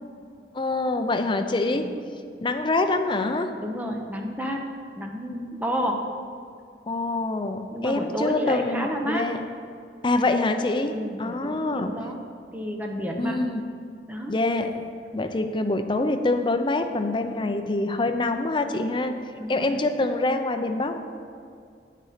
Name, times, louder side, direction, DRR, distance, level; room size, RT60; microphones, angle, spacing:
voice 1, 0.5-1.8 2.4-3.5 6.9-9.4 10.0-11.9 13.2-13.6 14.3-14.9 15.1-19.1 19.5-21.0, left 2 dB, 25° left, 6 dB, 0.5 m, -25 dB
voice 2, 3.6-4.6 5.0-6.0 7.7-9.3 10.9-12.2 12.5-13.4 14.1-14.3 19.4-19.8, equal, 10° right, 1 dB, 0.8 m, -30 dB
8.3 x 6.7 x 5.0 m, 2.3 s
head